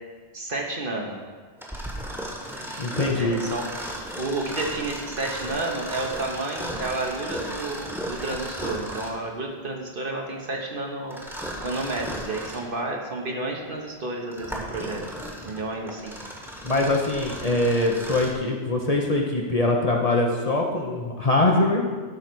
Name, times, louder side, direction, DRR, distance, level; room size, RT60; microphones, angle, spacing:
voice 1, 0.3-1.2 3.1-3.7 4.2-11.2 11.6-15.0 15.4-16.1, right 2 dB, 50° right, 0 dB, 1.4 m, -31 dB
Mechanisms, 1.6-9.3 11.1-12.7 13.3-13.4 14.1-18.4, equal, ahead, 1.3 m, -35 dB
voice 2, 2.8-3.4 16.6-21.8, left 2 dB, 35° left, 0 dB, 0.9 m, -23 dB
12.0 x 4.1 x 6.1 m, 1.5 s
omnidirectional pair, 1.1 m